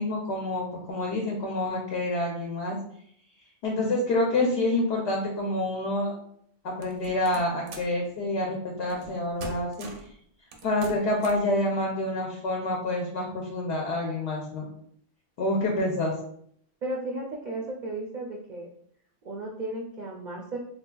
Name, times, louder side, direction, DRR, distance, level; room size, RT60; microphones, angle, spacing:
voice 1, 0.0-2.8 3.6-6.1 6.6-9.9 10.6-14.7 15.4-16.1, left 1 dB, 70° left, -1 dB, 0.9 m, -27 dB
sound 1, 6.8-8.0 8.9-9.1 9.4-10.1 10.5-11.5, right 3 dB, 85° right, 0.9 m, -43 dB
voice 2, 16.8-18.7 19.2-20.6, right 2 dB, 60° right, -1 dB, 0.5 m, -34 dB
3.4 x 2.6 x 2.2 m, 0.66 s
omnidirectional pair, 1.2 m